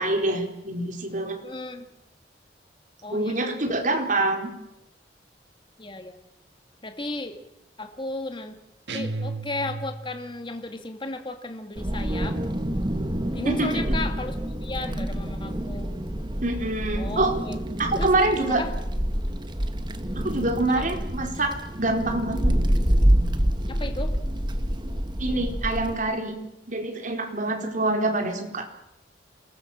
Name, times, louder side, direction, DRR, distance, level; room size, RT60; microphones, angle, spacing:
voice 1, 0.0-1.4 3.1-4.5 13.4-13.8 16.4-17.3 17.8-18.6 20.1-22.5 25.2-26.4 26.7-28.7, right 2 dB, 45° right, 3 dB, 4.5 m, -25 dB
voice 2, 1.4-1.8 3.0-3.5 5.8-6.2 6.8-7.4 7.8-8.6 8.9-12.4 13.3-15.9 17.0-17.6 18.0-18.1 18.6-18.7 20.7-20.9 23.7-24.1, left 2 dB, 30° left, 6 dB, 2.0 m, -34 dB
sound 1, 8.9-10.2, right 3 dB, 80° right, 1.9 m, -33 dB
Wind, 11.8-25.9, equal, 25° right, 1.7 m, -27 dB
28.0 x 19.5 x 7.5 m, 0.84 s
head